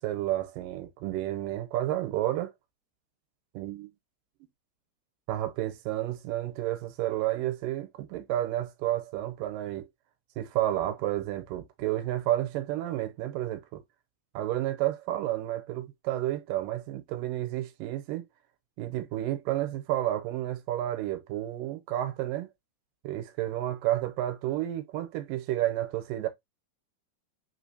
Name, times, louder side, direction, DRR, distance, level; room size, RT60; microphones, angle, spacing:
voice 1, 0.0-2.5 3.5-3.9 5.3-9.9 10.4-13.8 14.4-18.2 18.8-22.5 23.0-26.3, right 14 dB, 85° right, 2.3 m, -31 dB
5.1 x 3.5 x 2.6 m
omnidirectional pair, 4.0 m